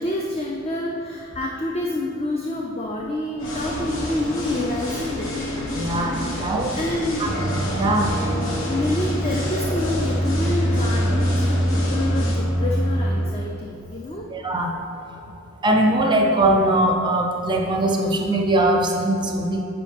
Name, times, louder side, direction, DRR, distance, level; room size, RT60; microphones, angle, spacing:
voice 1, 0.0-5.3 6.7-7.3 8.7-14.3, left 1 dB, 30° left, -1 dB, 0.5 m, -28 dB
sound 1, 3.4-12.4, left 1 dB, 75° left, 1.3 m, -29 dB
voice 2, 5.7-6.8 7.2-7.3 7.8-8.1 14.3-14.8 15.6-19.6, right 1 dB, 25° right, 2 dB, 0.5 m, -21 dB
sound 2, 7.2-13.3, equal, 10° left, 1.6 m, -24 dB
9.3 x 5.1 x 3.6 m, 2.6 s
head